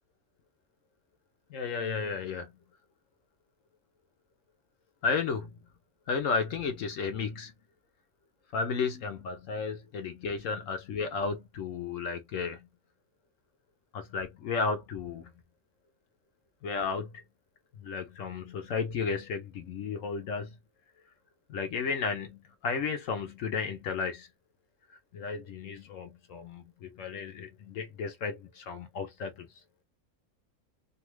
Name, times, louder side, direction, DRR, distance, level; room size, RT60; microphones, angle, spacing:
voice 1, 1.5-2.5 5.0-5.5 6.1-7.5 8.5-12.7 13.9-15.3 16.6-17.2 17.8-20.5 21.5-24.3 25.1-29.5, left 5 dB, 70° left, 0.9 m, -33 dB
2.7 x 2.3 x 3.0 m
omnidirectional pair, 1.5 m